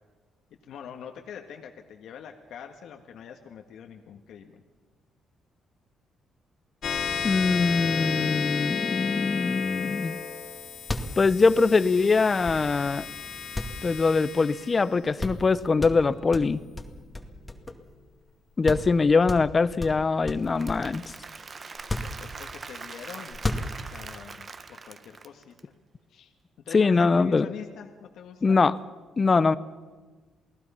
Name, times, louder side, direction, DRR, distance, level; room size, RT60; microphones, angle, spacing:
voice 1, 0.7-4.6 22.2-23.4 23.7-25.8 26.1-26.3 26.6-28.6 29.4-29.6, left 8 dB, 75° left, 3 dB, 1.6 m, -44 dB
sound 1, 6.8-17.7, left 6 dB, 55° left, 2.2 m, -33 dB
voice 2, 7.2-10.2 11.2-13.1 13.8-16.6 18.6-21.0 26.7-27.5 28.4-28.8 29.2-29.5, left 4 dB, 30° left, 15 dB, 0.9 m, -22 dB
sound 2, 10.5-10.6 10.8-13.0 13.5-14.6 14.9-15.0 15.2-15.5 15.8-18.0 18.3-18.4 18.6-18.9 19.3-21.0 21.7-22.7 23.3-24.1, left 1 dB, 15° left, 2.1 m, -34 dB
Applause / Crowd, 20.3-25.6, right 4 dB, 35° right, 0.9 m, -43 dB
28.0 x 18.0 x 5.7 m, 1.3 s
cardioid pair, 90°, 0 cm